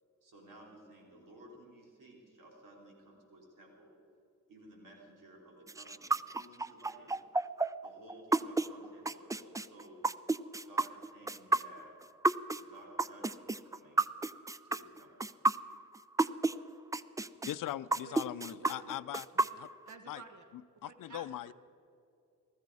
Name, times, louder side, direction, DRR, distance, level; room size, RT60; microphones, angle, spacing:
voice 1, 0.2-4.0 4.5-7.2 7.8-10.0 10.6-11.9 12.6-14.0 14.6-15.3, right 1 dB, 85° right, -1 dB, 3.8 m, -56 dB
sound 1, 5.7-16.5 16.9-19.9, right 3 dB, 10° right, 0.3 m, -30 dB
voice 2, 17.5-19.3 19.6-19.7 20.1-20.2 20.8-21.5, left 13 dB, 85° left, 14 dB, 0.5 m, -40 dB
voice 3, 18.5-18.9 19.3-19.5 19.9-20.5 20.8-21.5, right 5 dB, 65° right, 6 dB, 1.3 m, -52 dB
19.5 x 14.0 x 4.8 m, 2.7 s
wide cardioid pair, 115°, 32 cm